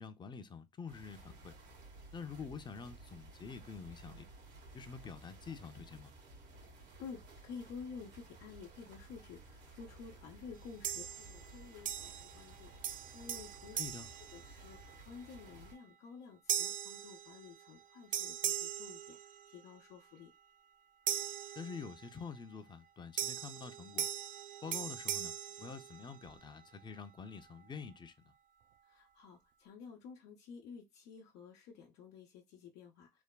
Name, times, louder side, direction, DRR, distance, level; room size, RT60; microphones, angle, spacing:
voice 1, 0.0-1.5 2.1-4.2 4.7-6.1 13.7-14.1 21.6-24.1 24.6-25.3 25.6-28.1, left 5 dB, 25° left, 0.5 m, -47 dB
sound 1, 0.9-15.8, right 2 dB, 90° right, 1.6 m, -56 dB
voice 2, 6.7-13.8 14.3-19.2 19.5-20.3 28.9-33.2, left 6 dB, 90° left, 0.7 m, -51 dB
sound 2, 10.8-11.5 11.8-12.5 12.8-15.0 15.5-15.8 16.5-17.8 18.1-19.7 21.1-22.2 23.2-26.4, right 9 dB, 50° right, 0.4 m, -40 dB
3.3 x 2.2 x 2.2 m
cardioid pair, 110°, 17 cm